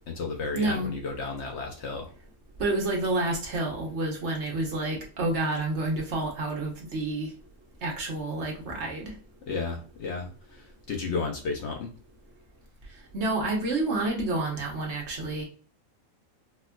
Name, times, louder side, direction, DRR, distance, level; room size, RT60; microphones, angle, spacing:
voice 1, 0.0-2.1 9.5-11.9, left 4 dB, 65° left, 0.8 m, -33 dB
voice 2, 0.5-0.9 2.6-7.3 7.8-9.1 13.1-15.4, right 2 dB, 55° right, 1.1 m, -29 dB
4.2 x 2.4 x 2.2 m
omnidirectional pair, 1.5 m